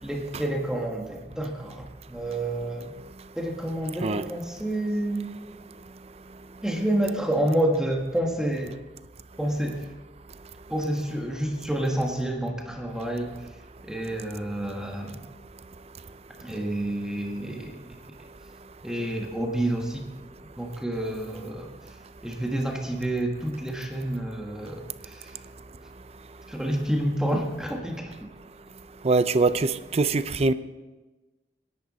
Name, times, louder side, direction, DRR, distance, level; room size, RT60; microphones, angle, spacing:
voice 1, 0.0-2.9 3.3-5.3 6.6-8.8 9.4-9.9 10.7-13.5 13.8-15.2 16.4-17.8 18.8-20.1 20.6-21.7 22.2-25.4 26.5-28.3, right 1 dB, 5° right, 1.4 m, -29 dB
voice 2, 29.0-30.5, right 3 dB, 35° right, 0.5 m, -23 dB
26.5 x 11.0 x 4.1 m
head